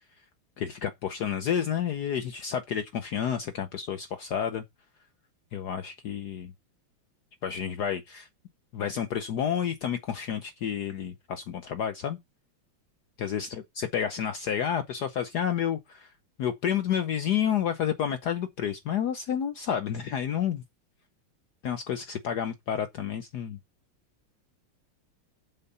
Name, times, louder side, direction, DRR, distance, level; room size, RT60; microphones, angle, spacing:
voice 1, 0.6-4.6 5.5-6.5 7.4-8.3 8.7-12.2 13.2-16.1 16.4-20.6 21.6-23.6, left 8 dB, 65° left, 1.1 m, -30 dB
7.6 x 5.6 x 5.5 m
omnidirectional pair, 2.3 m